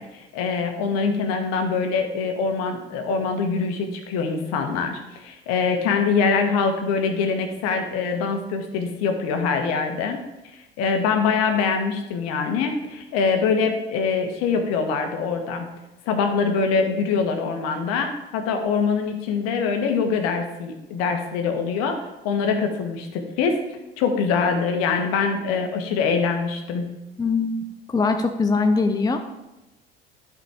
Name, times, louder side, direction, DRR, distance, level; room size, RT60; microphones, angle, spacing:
voice 1, 0.0-10.2 10.5-15.7 16.1-23.6 24.0-26.9, left 5 dB, 60° left, 5 dB, 1.6 m, -24 dB
voice 2, 27.2-27.6 27.9-29.2, left 4 dB, 15° left, 6 dB, 0.8 m, -21 dB
12.0 x 5.3 x 4.9 m, 0.97 s
figure-of-eight pair, 65°, 30 cm